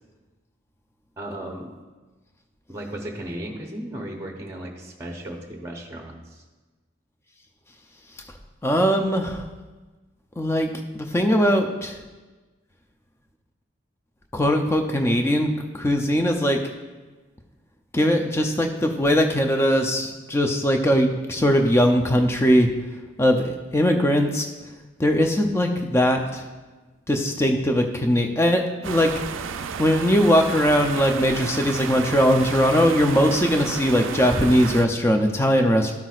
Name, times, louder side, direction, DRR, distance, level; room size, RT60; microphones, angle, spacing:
voice 1, 1.2-1.7 2.7-6.4, right 1 dB, 15° right, 1 dB, 0.8 m, -35 dB
voice 2, 8.6-9.5 10.4-12.0 14.3-16.6 17.9-22.7 23.2-24.5 25.0-26.4 27.1-29.1 29.8-35.9, equal, 15° left, 4 dB, 0.5 m, -20 dB
sound 1, 28.8-34.9, right 6 dB, 80° right, 0.4 m, -32 dB
13.0 x 5.9 x 2.4 m, 1.3 s
head